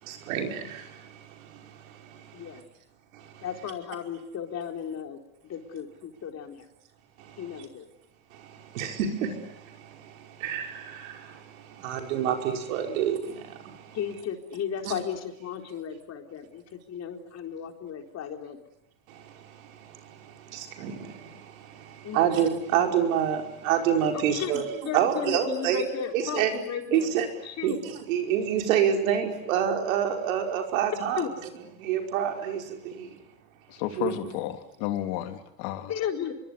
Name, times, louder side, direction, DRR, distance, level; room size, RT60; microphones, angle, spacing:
voice 1, 0.0-2.6 3.1-3.5 7.2-7.6 8.3-14.0 14.8-14.9 19.1-24.7 24.9-25.8 26.1-26.5 26.9-27.3 27.6-31.3 31.8-33.2 34.0-34.1, right 9 dB, 85° right, 3 dB, 5.3 m, -28 dB
voice 2, 3.4-6.7 7.4-7.9 12.9-13.1 13.9-18.6 22.0-22.3 24.1-27.1 27.4-27.8 31.2-31.3 35.9-36.3, left 8 dB, 40° left, 4 dB, 4.1 m, -35 dB
voice 3, 33.7-35.9, left 14 dB, 70° left, 7 dB, 3.0 m, -32 dB
25.5 x 22.5 x 9.7 m, 0.80 s
supercardioid pair, 120°, 39 cm